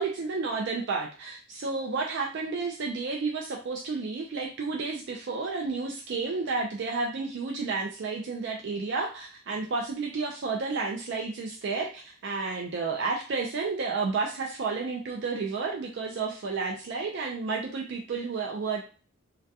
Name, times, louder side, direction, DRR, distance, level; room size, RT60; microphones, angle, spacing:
voice 1, 0.0-18.8, right 4 dB, 55° right, 0 dB, 0.3 m, -31 dB
2.2 x 2.2 x 2.7 m, 0.37 s
head